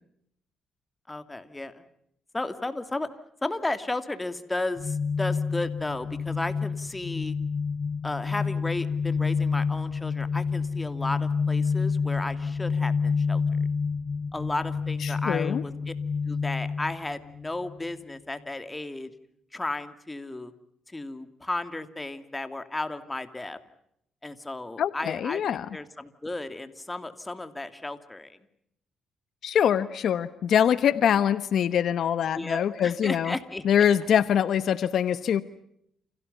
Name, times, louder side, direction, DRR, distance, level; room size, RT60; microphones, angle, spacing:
voice 1, 1.1-1.8 2.3-3.1 3.4-7.3 8.0-13.4 14.3-15.9 16.3-19.1 19.5-20.5 20.9-23.6 24.2-25.4 25.7-28.4 32.3-33.9, left 2 dB, 15° left, 10 dB, 2.8 m, -34 dB
sound 1, 4.8-17.8, left 5 dB, 40° left, 1.1 m, -28 dB
voice 2, 15.0-15.6 24.8-25.7 29.4-33.3 33.6-35.4, left 9 dB, 65° left, 14 dB, 1.2 m, -24 dB
29.5 x 29.5 x 5.6 m, 0.73 s
cardioid pair, 90°, 0 cm